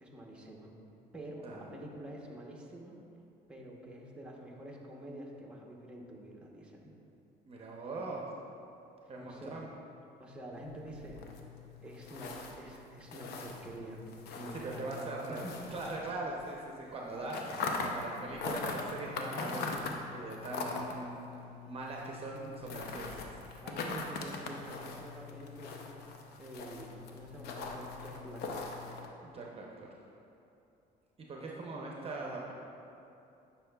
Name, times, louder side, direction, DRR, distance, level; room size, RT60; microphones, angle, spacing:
voice 1, 0.0-0.7 1.1-3.0 3.5-6.9 9.0-9.7 10.2-11.2 11.8-14.0 14.4-15.6 17.8-17.9 23.6-26.1 26.4-28.6, right 1 dB, 5° right, -2 dB, 1.0 m, -47 dB
voice 2, 7.5-8.3 9.1-9.7 14.5-15.4 15.7-17.4 17.8-21.2 21.7-23.4 29.2-29.9 31.2-32.5, right 2 dB, 35° right, -2 dB, 0.7 m, -41 dB
sound 1, 10.5-16.5 16.8-29.1, left 3 dB, 75° left, 0.7 m, -41 dB
10.5 x 5.7 x 2.3 m, 2.8 s
cardioid pair, 110°, 17 cm